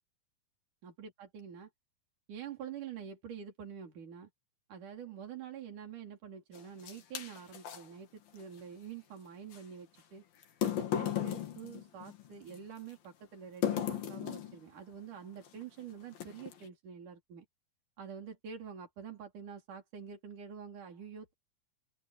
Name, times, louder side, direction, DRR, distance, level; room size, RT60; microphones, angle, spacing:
voice 1, 0.8-1.7 2.3-4.3 4.7-10.2 10.6-17.5 18.0-21.3, right 7 dB, 60° right, 5.7 m, -47 dB
sound 1, 6.6-7.8 9.5-9.6 10.4-12.6 13.6-14.6 15.4-15.6 16.1-16.7, left 9 dB, 75° left, 4.2 m, -35 dB
omnidirectional pair, 4.2 m